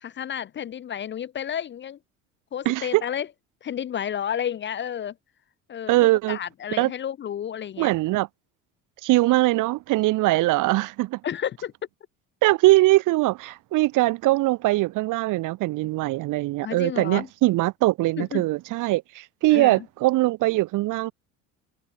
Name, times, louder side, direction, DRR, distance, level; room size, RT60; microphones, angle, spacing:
voice 1, 0.0-2.0 2.5-3.3 3.6-5.2 5.7-6.0 6.3-7.9 11.2-11.7 16.6-17.3 18.2-18.5 19.5-19.9, left 9 dB, 30° left, 0.6 m, -31 dB
voice 2, 2.6-3.0 5.9-6.4 6.8-6.9 7.8-8.3 9.0-11.2 12.4-21.1, right 19 dB, 50° right, 0.9 m, -21 dB
hypercardioid pair, 65°, 40 cm